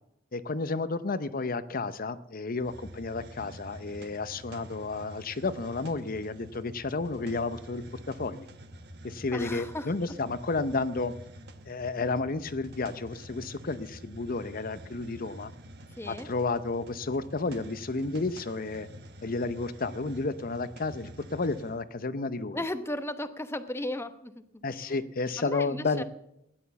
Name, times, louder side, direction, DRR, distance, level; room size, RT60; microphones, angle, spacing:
voice 1, 0.3-8.5 9.0-11.1 11.7-15.5 16.1-18.9 19.2-22.6 24.6-26.0, left 3 dB, 45° left, 14 dB, 0.7 m, -32 dB
Hiss, 2.6-21.8, equal, 55° right, 1.3 m, -47 dB
voice 2, 9.3-9.9 16.0-16.3 22.5-24.3 25.4-26.0, left 1 dB, 10° left, 10 dB, 0.9 m, -35 dB
17.0 x 11.0 x 7.0 m, 0.82 s
head